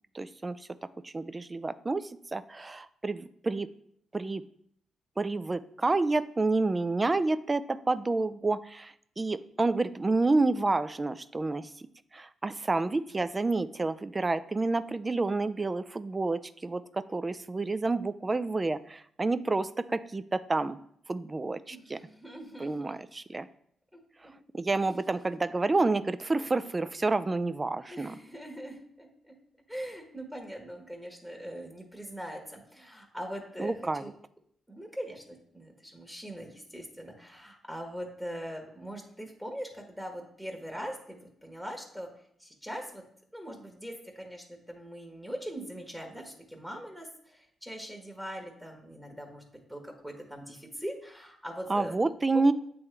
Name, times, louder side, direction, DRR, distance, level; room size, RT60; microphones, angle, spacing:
voice 1, 0.1-0.6 1.0-3.7 4.1-4.4 5.2-11.7 12.1-20.8 21.1-22.0 22.6-23.5 24.5-28.1 33.6-34.0 51.7-52.5, right 3 dB, 30° right, 14 dB, 0.4 m, -29 dB
voice 2, 21.7-23.0 23.9-24.0 24.7-25.1 27.8-29.1 29.7-34.1 34.7-42.1 42.4-43.0 43.3-49.4 49.7-52.1, equal, 10° right, 2 dB, 1.4 m, -41 dB
8.1 x 3.5 x 3.4 m, 0.68 s
supercardioid pair, 50°, 0 cm